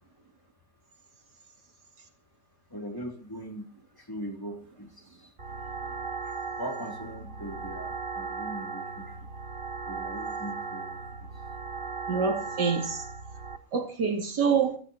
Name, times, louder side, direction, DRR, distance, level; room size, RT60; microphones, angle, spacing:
voice 1, 2.7-5.3 6.6-9.3 9.8-11.4, equal, 10° left, 3.2 m, -41 dB
sound 1, 5.4-13.6, right 4 dB, 35° right, 1.4 m, -37 dB
voice 2, 12.1-13.0 13.7-14.8, right 6 dB, 80° right, 3.1 m, -26 dB
30.0 x 14.5 x 2.8 m
omnidirectional pair, 1.8 m